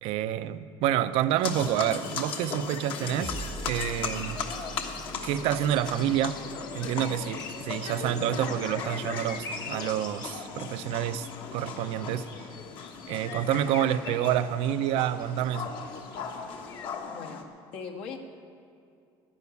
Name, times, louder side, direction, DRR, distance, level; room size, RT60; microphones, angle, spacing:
voice 1, 0.0-3.3 3.7-4.4 5.2-6.4 6.7-11.3 11.5-12.3 13.1-15.7, right 11 dB, 70° right, 12 dB, 0.6 m, -28 dB
sound 1, 1.3-17.0, left 5 dB, 40° left, 1.1 m, -45 dB
sound 2, 1.4-17.4, left 5 dB, 60° left, 1.4 m, -38 dB
sound 3, 3.2-7.8, right 3 dB, 5° right, 0.6 m, -43 dB
voice 2, 17.1-17.5 17.7-18.2, left 5 dB, 75° left, 0 dB, 1.7 m, -39 dB
11.0 x 11.0 x 8.3 m, 2.5 s
cardioid pair, 130°, 10 cm